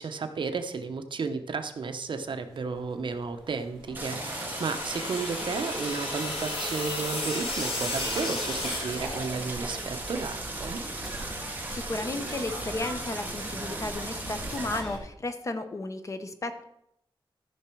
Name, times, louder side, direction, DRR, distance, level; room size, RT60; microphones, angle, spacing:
voice 1, 0.0-10.8, right 4 dB, 60° right, 8 dB, 0.8 m, -33 dB
sound 1, 2.5-15.0, right 1 dB, 5° right, 3.6 m, -41 dB
sound 2, 3.9-9.7, left 2 dB, 75° left, 2.7 m, -34 dB
Stream, 3.9-14.8, right 2 dB, 20° right, 1.3 m, -38 dB
voice 2, 11.7-16.6, left 2 dB, 35° left, 8 dB, 0.8 m, -34 dB
14.0 x 6.1 x 4.5 m, 0.81 s
wide cardioid pair, 165°, 9 cm